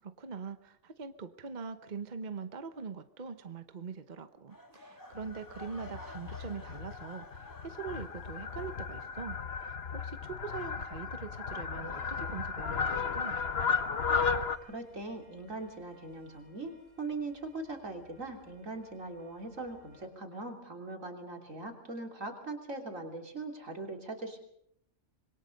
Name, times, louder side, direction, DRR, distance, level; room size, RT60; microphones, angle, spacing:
voice 1, 0.0-13.4, right 5 dB, 40° right, 9 dB, 1.1 m, -43 dB
sound 1, 4.5-9.5 9.8-10.1 10.7-10.8, left 1 dB, 15° left, 1.9 m, -52 dB
Fowl, 5.1-14.6, left 5 dB, 50° left, 1.4 m, -35 dB
sound 2, 12.7-20.1, left 3 dB, 75° left, 6.7 m, -58 dB
voice 2, 14.6-24.4, right 3 dB, 80° right, 3 dB, 3.7 m, -41 dB
26.0 x 22.0 x 5.3 m, 0.72 s
omnidirectional pair, 1.3 m